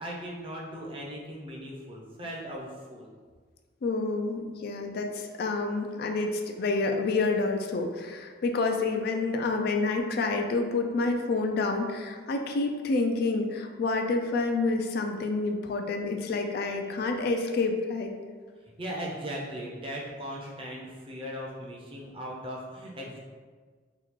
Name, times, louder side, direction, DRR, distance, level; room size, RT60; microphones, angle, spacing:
voice 1, 0.0-3.1 18.8-23.2, equal, 30° right, -2 dB, 0.5 m, -38 dB
voice 2, 3.8-18.1, left 3 dB, 55° left, 4 dB, 0.3 m, -28 dB
3.0 x 2.3 x 3.5 m, 1.5 s
head